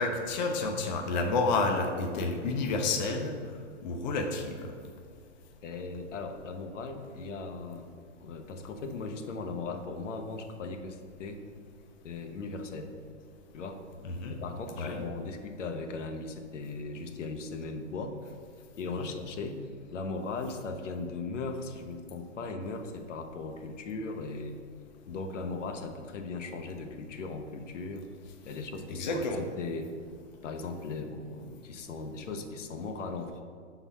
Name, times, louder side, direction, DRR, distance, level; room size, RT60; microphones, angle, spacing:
voice 1, 0.0-3.4 3.8-4.7 14.0-14.4 14.8-15.0 19.0-19.1 28.9-29.4, left 3 dB, 40° left, 3 dB, 0.6 m, -30 dB
voice 2, 5.6-7.9 8.2-11.4 12.0-12.9 13.5-13.8 14.3-18.3 18.8-19.6 19.9-24.6 25.1-28.0 28.4-29.9 30.4-33.4, left 3 dB, 80° left, 6 dB, 0.8 m, -38 dB
5.9 x 4.0 x 4.1 m, 2.1 s
hypercardioid pair, 155°, 37 cm